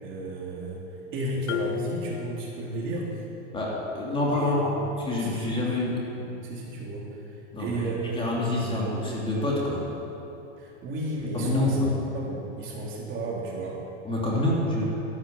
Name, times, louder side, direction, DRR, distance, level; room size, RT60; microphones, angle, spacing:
voice 1, 0.0-3.2 4.3-4.7 5.2-5.8 6.1-7.0 7.6-8.8 10.6-11.8 12.1-13.8, right 2 dB, 35° right, -3 dB, 3.5 m, -33 dB
Marimba xylophone, 1.5-3.2, left 11 dB, 85° left, 0.8 m, -34 dB
voice 2, 3.5-4.7 5.0-5.9 7.5-9.9 11.3-11.9 14.0-14.9, left 1 dB, 15° left, -4 dB, 3.0 m, -27 dB
13.0 x 11.5 x 7.3 m, 3.0 s
supercardioid pair, 130°, 35 cm